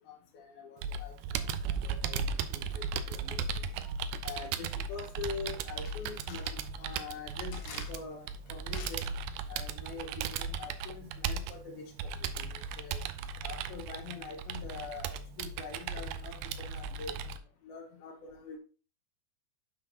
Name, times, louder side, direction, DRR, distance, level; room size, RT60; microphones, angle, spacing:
voice 1, 0.1-1.1 1.6-2.2 2.5-3.4 3.8-3.9 4.2-9.0 9.5-12.1 12.4-13.0 13.4-17.1 17.7-18.6, left 5 dB, 80° left, 2 dB, 3.0 m, -44 dB
Computer keyboard, 0.8-17.4, right 6 dB, 85° right, 1.8 m, -37 dB
9.0 x 5.8 x 2.9 m, 0.36 s
omnidirectional pair, 4.4 m